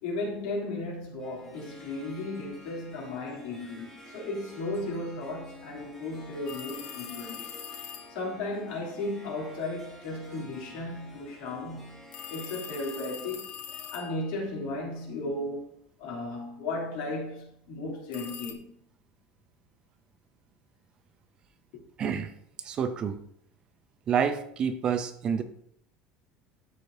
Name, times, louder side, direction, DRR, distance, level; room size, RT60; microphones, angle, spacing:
voice 1, 0.0-7.5 8.1-13.6 13.9-18.6, left 2 dB, 90° left, 3.0 m, -35 dB
Harp, 1.2-15.7, left 1 dB, 10° left, 1.6 m, -51 dB
sound 1, 6.5-8.2 12.1-14.4 18.1-18.5, left 9 dB, 40° left, 0.6 m, -42 dB
voice 2, 22.0-22.3 22.6-23.2 24.1-25.4, right 7 dB, 30° right, 0.5 m, -28 dB
12.5 x 4.7 x 2.7 m
cardioid pair, 180°, 3 cm